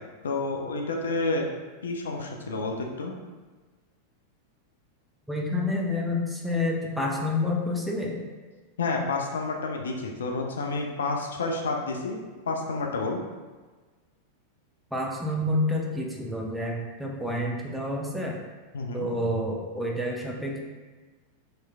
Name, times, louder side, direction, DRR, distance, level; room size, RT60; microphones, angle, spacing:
voice 1, 0.2-1.5 1.8-3.1 8.8-12.2 12.5-13.2 18.7-19.1, left 3 dB, 65° left, 1 dB, 0.3 m, -29 dB
voice 2, 5.3-8.2 14.9-18.4 18.9-20.6, left 1 dB, ahead, -2 dB, 0.5 m, -28 dB
3.2 x 3.0 x 2.3 m, 1.3 s
figure-of-eight pair, 90°, 0 cm